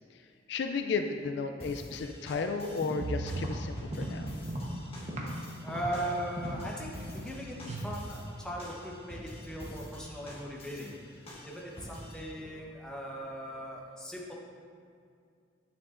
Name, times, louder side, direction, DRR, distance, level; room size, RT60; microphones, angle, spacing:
voice 1, 0.5-4.3, left 4 dB, 65° left, 6 dB, 0.3 m, -33 dB
sound 1, 1.6-12.3, left 1 dB, 30° left, 1.4 m, -47 dB
sound 2, 2.7-5.4 5.7-6.7 7.1-7.4 7.7-7.8, right 1 dB, 35° right, 0.9 m, -39 dB
sound 3, 3.0-9.0, right 2 dB, 80° right, 0.5 m, -41 dB
voice 2, 5.6-7.6 7.8-10.9 11.4-14.3, right 1 dB, 5° left, -3 dB, 0.9 m, -39 dB
9.1 x 7.0 x 2.5 m, 2.3 s
head